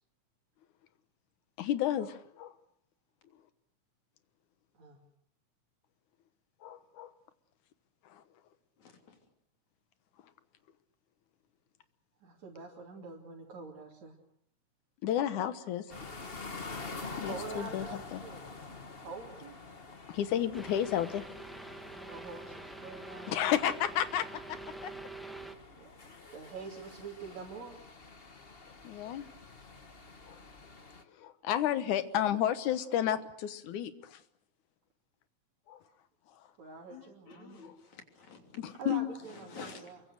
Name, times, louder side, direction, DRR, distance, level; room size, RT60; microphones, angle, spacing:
voice 1, 1.6-2.5 6.6-7.1 8.1-8.2 15.0-15.9 17.2-18.2 20.1-21.2 23.3-24.9 28.8-29.3 30.3-30.4 31.1-34.2 35.7-35.8 36.4-36.5 37.6-37.7 38.6-39.1, left 10 dB, 90° left, 11 dB, 2.7 m, -32 dB
voice 2, 8.8-9.2 36.9-38.6 39.3-39.9, left 5 dB, 70° left, 4 dB, 4.5 m, -50 dB
voice 3, 12.2-14.2 17.2-18.5 19.0-19.6 21.8-23.6 25.8-25.9 26.3-27.8 36.6-37.9 38.8-40.0, right 5 dB, 65° right, -3 dB, 4.2 m, -46 dB
sound 1, 15.9-31.0, left 3 dB, 30° left, 1.1 m, -47 dB
sound 2, 20.5-25.5, right 2 dB, ahead, 1.3 m, -46 dB
28.5 x 23.5 x 6.5 m, 0.69 s
omnidirectional pair, 3.4 m